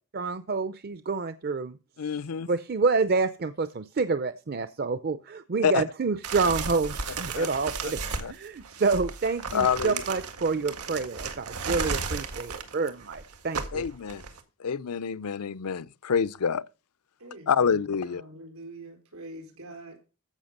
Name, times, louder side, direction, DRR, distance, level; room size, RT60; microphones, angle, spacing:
voice 1, 0.1-1.8 2.5-13.9, right 4 dB, 45° right, 0.5 m, -28 dB
voice 2, 2.0-2.5 5.6-5.8 7.3-7.5 8.2-8.3 9.5-10.0 13.7-14.2 14.6-16.6 17.5-18.2, left 6 dB, 85° left, 0.6 m, -27 dB
sound 1, 6.2-14.4, right 4 dB, 90° right, 1.8 m, -34 dB
voice 3, 17.2-20.0, right 1 dB, 70° right, 4.2 m, -45 dB
14.5 x 5.8 x 6.6 m
head